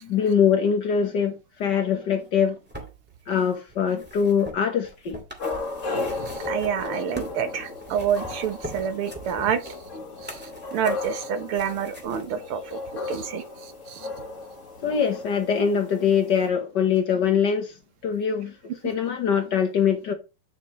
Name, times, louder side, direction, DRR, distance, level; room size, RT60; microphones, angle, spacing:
voice 1, 0.0-2.6 3.3-5.2 14.8-17.7 18.0-18.5 18.8-20.1, left 7 dB, 55° left, 1.6 m, -23 dB
sound 1, 2.3-7.4 7.8-12.3 13.1-13.2, right 1 dB, 5° right, 2.0 m, -42 dB
sound 2, 5.4-16.5, left 3 dB, 40° left, 1.6 m, -35 dB
voice 2, 6.0-9.7 10.2-10.4 10.7-12.8 13.0-14.1, right 8 dB, 75° right, 1.9 m, -28 dB
9.5 x 6.7 x 3.1 m
omnidirectional pair, 2.4 m